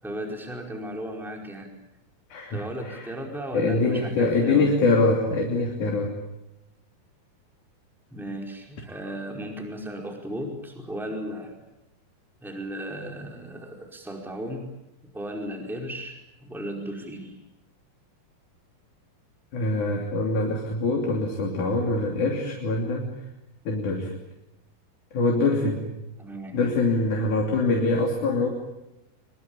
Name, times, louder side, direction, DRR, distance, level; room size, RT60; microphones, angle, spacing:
voice 1, 0.0-1.7 2.5-4.7 8.1-11.5 12.4-14.7 15.1-17.4 26.2-26.6, equal, ahead, 2 dB, 4.4 m, -35 dB
voice 2, 2.3-3.1 3.5-6.2 19.5-23.1 23.7-24.1 25.1-25.9 26.5-28.5, left 3 dB, 55° left, 1 dB, 4.4 m, -24 dB
25.5 x 23.5 x 8.7 m, 0.93 s
omnidirectional pair, 4.3 m